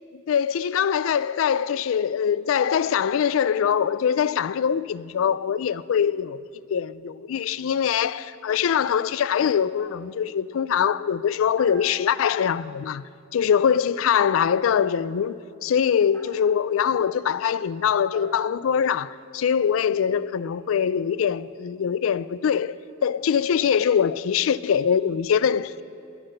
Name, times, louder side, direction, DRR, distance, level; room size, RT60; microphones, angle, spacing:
voice 1, 0.3-6.4 6.7-13.0 13.3-22.7 23.0-25.8, left 8 dB, 75° left, 0.3 m, -23 dB
sound 1, 9.8-10.3 11.6-12.5 14.2-14.9 16.1-16.7 18.1-19.4, equal, 10° left, 1.6 m, -48 dB
13.0 x 10.5 x 6.4 m
head